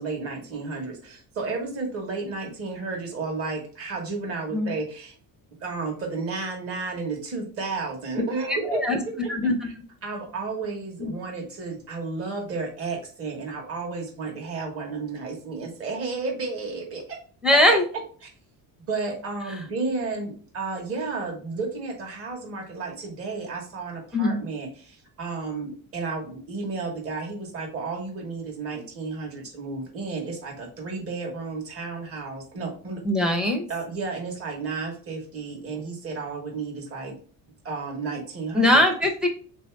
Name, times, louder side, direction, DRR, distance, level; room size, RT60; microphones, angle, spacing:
voice 1, 0.0-5.1 5.6-8.8 9.2-9.3 9.6-9.7 10.0-17.2 18.2-18.3 18.9-33.0 33.7-37.2 37.6-38.8, right 4 dB, 35° right, 1 dB, 1.1 m, -32 dB
voice 2, 8.5-9.0 9.3-9.7 11.0-11.1 17.4-17.8 24.1-24.4 33.0-33.6 38.5-39.3, left 1 dB, ahead, 3 dB, 0.6 m, -21 dB
3.9 x 2.7 x 4.4 m, 0.42 s
cardioid pair, 180°, 38 cm